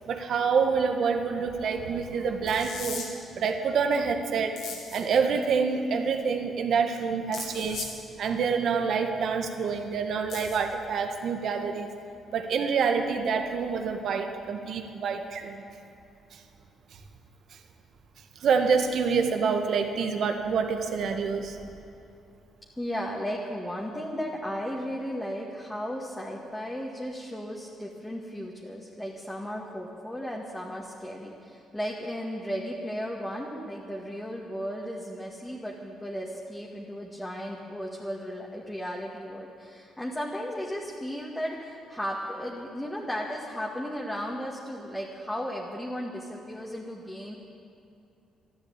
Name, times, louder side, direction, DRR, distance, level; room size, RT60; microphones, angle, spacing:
voice 1, 0.1-3.1 3.4-4.6 4.9-7.9 8.2-11.9 12.3-15.6 16.3-16.4 18.4-21.6, right 5 dB, 65° right, 6 dB, 1.6 m, -27 dB
sound 1, 2.5-3.1 4.6-5.0 7.3-7.9 10.3-10.6, left 5 dB, 80° left, 3.1 m, -37 dB
voice 2, 22.8-47.4, equal, 10° left, -3 dB, 2.0 m, -35 dB
13.0 x 12.0 x 8.9 m, 2.7 s
cardioid pair, 80°, 0 cm